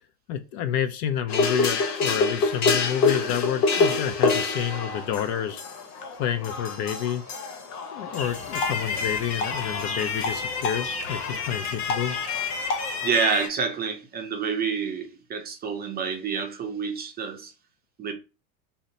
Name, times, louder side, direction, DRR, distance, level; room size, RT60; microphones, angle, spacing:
voice 1, 0.3-5.6 6.2-7.2 7.9-12.2, left 9 dB, 50° left, 0.5 m, -29 dB
sound 1, 1.3-13.5, left 4 dB, 85° left, 0.9 m, -27 dB
sound 2, 8.2-13.5, left 2 dB, 15° left, 0.8 m, -42 dB
voice 2, 13.0-17.5 18.0-18.1, right 6 dB, 20° right, 0.5 m, -28 dB
2.7 x 2.0 x 3.9 m
supercardioid pair, 115°, 45 cm